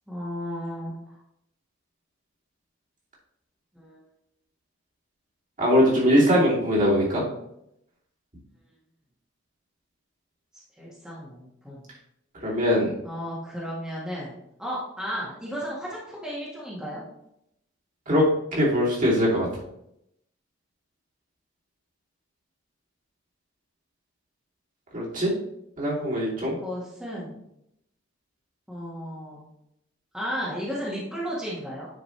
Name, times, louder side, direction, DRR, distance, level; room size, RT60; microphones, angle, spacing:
voice 1, 0.1-1.2 3.7-4.0 10.8-11.8 13.0-17.0 26.6-27.4 28.7-29.5 30.1-31.9, equal, 5° right, -7 dB, 1.6 m, -34 dB
voice 2, 5.6-7.2 12.4-12.9 18.1-18.2 18.5-19.5 24.9-25.3 25.8-26.6, equal, 40° right, -5 dB, 2.7 m, -21 dB
9.8 x 4.9 x 3.2 m, 0.79 s
head